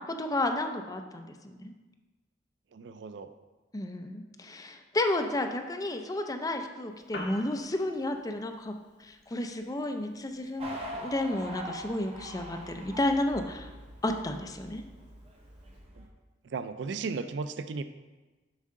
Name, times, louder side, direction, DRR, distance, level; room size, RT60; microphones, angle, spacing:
voice 1, 0.1-1.7 3.7-8.7 9.0-13.7 14.0-14.8, left 1 dB, 20° left, 5 dB, 0.5 m, -32 dB
voice 2, 2.7-3.3 16.0-16.1 16.5-17.8, right 4 dB, 70° right, 11 dB, 0.4 m, -35 dB
Piano, 6.9-15.9, left 2 dB, 70° left, 1.3 m, -51 dB
sound 1, 10.6-16.1, right 1 dB, 35° right, 1.0 m, -43 dB
7.4 x 5.5 x 3.7 m, 1.2 s
head